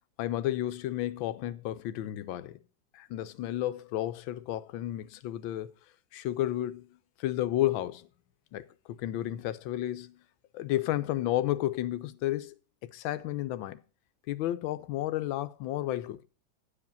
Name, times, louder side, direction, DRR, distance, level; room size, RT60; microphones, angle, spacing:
voice 1, 0.2-2.6 2.9-5.7 6.1-6.9 7.2-8.1 8.5-10.1 10.5-12.5 12.9-13.8 14.3-16.2, left 14 dB, 90° left, 1.4 m, -32 dB
9.3 x 5.0 x 6.9 m
omnidirectional pair, 2.1 m